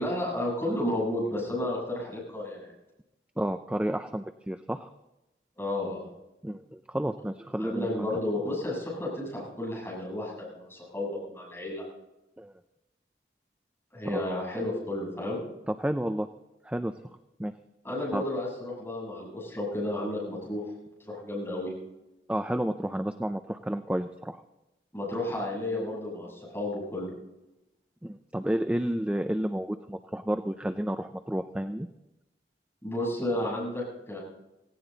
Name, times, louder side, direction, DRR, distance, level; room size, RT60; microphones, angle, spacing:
voice 1, 0.0-2.7 5.6-6.1 7.6-11.8 13.9-15.4 17.8-20.6 21.0-21.7 24.9-27.1 32.8-34.2, left 1 dB, 15° left, -5 dB, 7.4 m, -32 dB
voice 2, 3.4-4.9 6.4-7.9 12.4-12.6 14.1-14.2 15.7-16.3 16.6-16.9 17.4-17.5 18.1-18.2 22.3-24.4 28.0-31.9, right 1 dB, 5° right, 8 dB, 0.4 m, -31 dB
18.0 x 16.5 x 4.0 m, 0.94 s
head